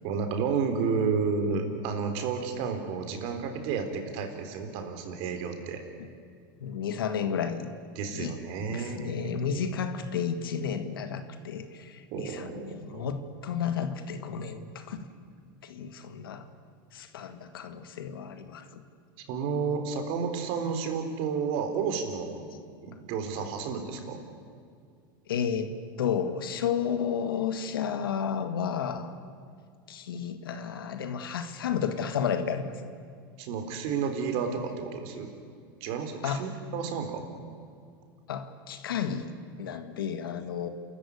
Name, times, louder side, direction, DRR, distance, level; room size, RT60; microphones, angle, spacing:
voice 1, 0.0-5.8 8.0-9.8 12.1-13.1 19.3-22.4 22.8-24.2 33.4-35.3 35.8-37.3, right 5 dB, 55° right, 6 dB, 3.8 m, -31 dB
voice 2, 6.6-7.7 8.1-8.3 8.7-15.1 15.6-16.5 16.9-18.8 25.3-25.7 26.0-29.1 29.9-32.7 36.2-36.5 38.3-39.3 39.6-40.7, left 7 dB, 90° left, 9 dB, 1.9 m, -32 dB
29.0 x 14.0 x 9.7 m, 2.3 s
supercardioid pair, 115°, 12 cm